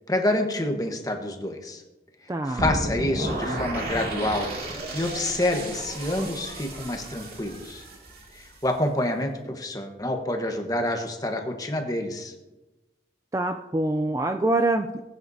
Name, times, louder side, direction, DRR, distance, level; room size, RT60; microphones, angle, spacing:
voice 1, 0.1-1.8 2.4-4.5 4.9-7.8 8.3-12.3, left 1 dB, 20° left, 4 dB, 1.1 m, -27 dB
voice 2, 2.3-2.6 13.3-15.0, right 2 dB, 20° right, 6 dB, 0.3 m, -25 dB
sound 1, 2.6-8.6, right 1 dB, 55° right, 2.4 m, -33 dB
20.5 x 9.2 x 2.7 m, 1.1 s
head